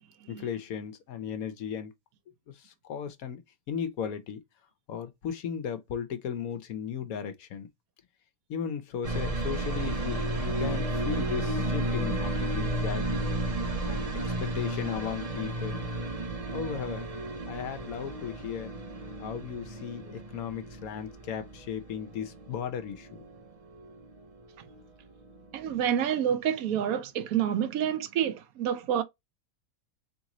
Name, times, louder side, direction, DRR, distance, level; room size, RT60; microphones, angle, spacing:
voice 1, 0.3-1.9 2.6-3.4 3.7-4.4 4.9-7.7 8.5-13.3 13.9-14.1 14.4-15.8 16.5-17.1 17.5-18.8 19.2-23.2, left 8 dB, 80° left, 1.2 m, -36 dB
sound 1, 9.0-24.8 25.1-25.9, right 1 dB, 30° right, 0.8 m, -33 dB
voice 2, 25.5-29.0, right 9 dB, 80° right, 1.1 m, -28 dB
3.8 x 3.2 x 2.9 m
omnidirectional pair, 1.5 m